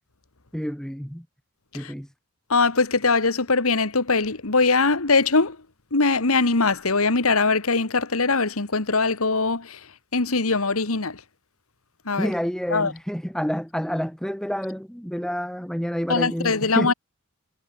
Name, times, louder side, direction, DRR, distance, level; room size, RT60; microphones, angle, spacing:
voice 1, 0.5-1.2 1.7-2.1 12.2-16.9, equal, 5° left, 1.5 m, -28 dB
voice 2, 2.5-5.6 5.9-9.8 10.1-11.2 12.1-12.3 12.7-12.9 16.1-16.9, left 3 dB, 80° left, 1.9 m, -21 dB
head